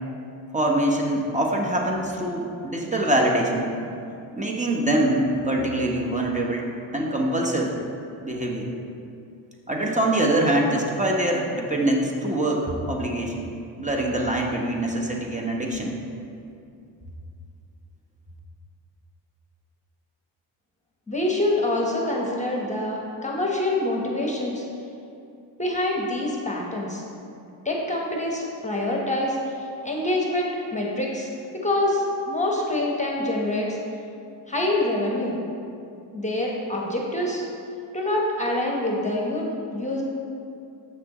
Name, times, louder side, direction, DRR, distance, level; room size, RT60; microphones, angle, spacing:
voice 1, 0.5-3.7 4.3-7.7 8.2-8.7 9.7-15.9, right 1 dB, 15° right, -1 dB, 0.9 m, -24 dB
voice 2, 21.1-24.6 25.6-27.0 27.6-33.8 34.5-35.4 36.1-37.4 37.9-40.0, left 1 dB, 15° left, -2 dB, 1.0 m, -26 dB
7.4 x 6.0 x 3.0 m, 2.6 s
cardioid pair, 70°, 47 cm